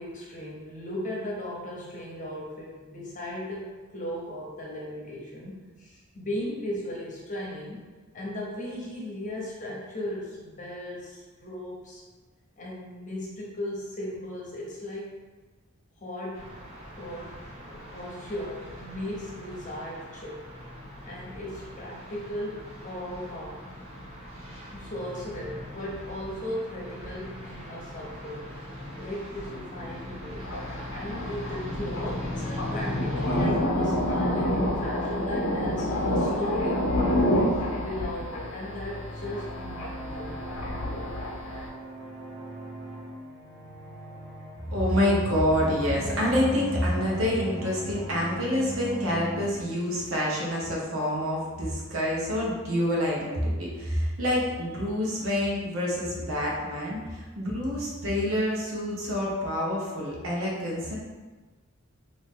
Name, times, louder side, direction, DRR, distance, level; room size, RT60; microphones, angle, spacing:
voice 1, 0.0-7.8 8.1-12.0 12.6-15.1 16.0-16.5 16.9-17.3 17.6-20.5 21.0-23.6 24.7-28.5 29.0-30.4 30.9-36.9 37.8-40.4, left 1 dB, 35° left, -4 dB, 0.9 m, -36 dB
sound 1, 16.3-33.5, left 1 dB, 30° right, 0.8 m, -39 dB
Thunder, 30.4-41.7, left 1 dB, 65° left, 0.6 m, -28 dB
sound 2, 38.4-49.5, equal, 50° right, 1.1 m, -39 dB
voice 2, 44.7-60.9, equal, 70° right, -4 dB, 0.9 m, -27 dB
3.1 x 2.6 x 3.6 m, 1.3 s
head